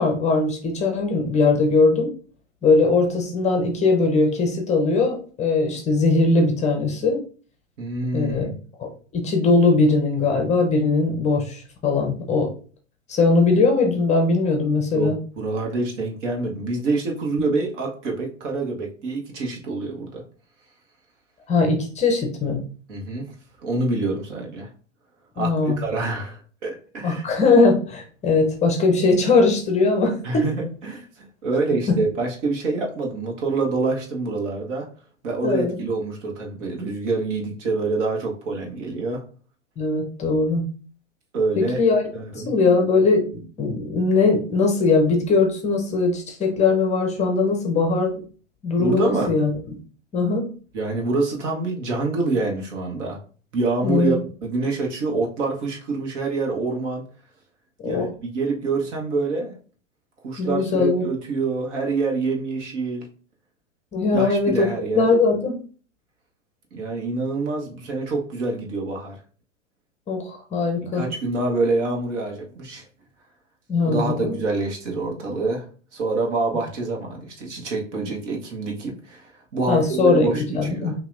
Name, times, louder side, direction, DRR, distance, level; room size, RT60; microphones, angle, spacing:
voice 1, 0.0-2.1 2.6-7.2 8.1-8.5 8.8-12.5 13.1-15.2 21.5-22.6 25.4-25.8 27.0-30.4 31.9-32.0 35.4-35.8 39.8-40.6 41.6-42.0 42.3-48.2 48.6-49.5 50.1-50.4 53.8-54.2 57.8-58.1 60.4-61.1 63.9-65.6 70.1-71.0 73.7-74.4 79.7-80.3 80.5-80.9, left 3 dB, 15° left, 3 dB, 0.7 m, -20 dB
voice 2, 7.8-8.5 14.9-20.2 22.9-23.3 23.6-24.7 25.3-27.2 30.2-34.9 35.2-39.2 41.3-41.8 42.1-42.5 48.8-49.3 50.7-53.2 53.5-57.0 57.8-59.5 60.2-63.1 64.1-65.0 66.7-69.1 70.8-72.9 73.8-75.7 75.9-80.9, right 3 dB, 65° right, 1 dB, 1.4 m, -26 dB
5.6 x 2.8 x 2.6 m, 0.41 s
hypercardioid pair, 115°, 39 cm